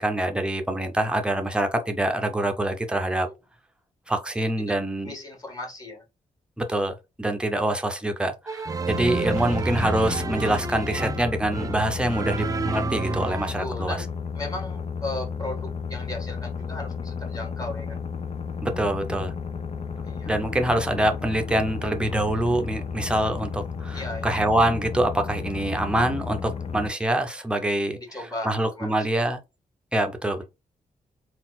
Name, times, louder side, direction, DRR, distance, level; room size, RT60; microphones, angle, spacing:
voice 1, 0.0-3.3 4.1-5.2 6.6-14.0 18.6-19.3 20.3-28.0 28.4-29.4 29.9-30.4, right 1 dB, 5° right, 0.7 m, -25 dB
voice 2, 5.0-6.0 9.2-9.6 13.6-14.1 14.3-18.0 20.0-20.3 23.9-24.4 27.8-29.3, left 2 dB, 25° left, 1.7 m, -36 dB
sound 1, 8.5-13.5, right 4 dB, 25° right, 0.3 m, -30 dB
sound 2, 8.9-26.9, left 6 dB, 45° left, 0.6 m, -33 dB
4.0 x 2.5 x 4.1 m
wide cardioid pair, 145°, 14 cm